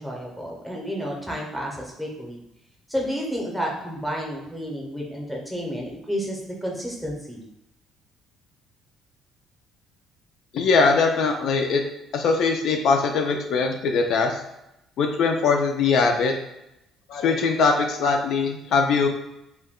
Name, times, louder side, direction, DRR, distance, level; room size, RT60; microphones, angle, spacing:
voice 1, 0.0-2.4 2.9-7.4, equal, ahead, -2 dB, 0.6 m, -31 dB
voice 2, 10.5-11.8 12.1-14.4 15.0-16.3 17.1-19.1, left 4 dB, 60° left, 3 dB, 0.3 m, -21 dB
2.2 x 2.1 x 3.5 m, 0.87 s
cardioid pair, 125°, 0 cm